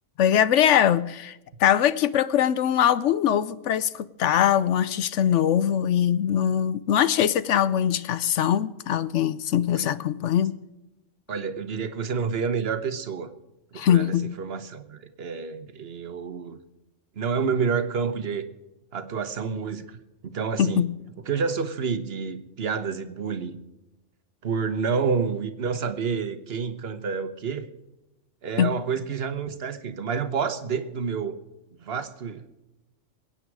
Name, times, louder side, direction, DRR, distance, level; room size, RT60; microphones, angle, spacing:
voice 1, 0.2-1.3 1.6-10.5 13.8-14.3 20.6-20.9 28.6-28.7, left 10 dB, 75° left, 0.9 m, -22 dB
voice 2, 11.3-13.3 13.7-16.6 17.2-18.5 18.9-20.9 21.3-23.6 24.4-27.7 28.4-31.4 31.8-32.6, right 5 dB, 55° right, 1.3 m, -29 dB
22.5 x 9.0 x 4.7 m
omnidirectional pair, 1.3 m